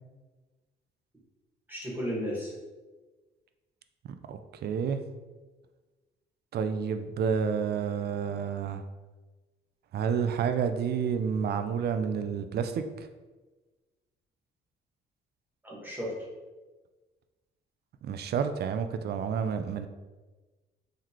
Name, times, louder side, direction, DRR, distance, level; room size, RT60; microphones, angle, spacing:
voice 1, 1.7-2.5 15.6-16.1, equal, 10° right, -5 dB, 1.4 m, -34 dB
voice 2, 4.3-5.0 6.5-8.8 9.9-13.1 18.0-19.9, right 7 dB, 55° right, 9 dB, 0.4 m, -30 dB
3.9 x 3.1 x 2.9 m, 1.3 s
cardioid pair, 90°, 20 cm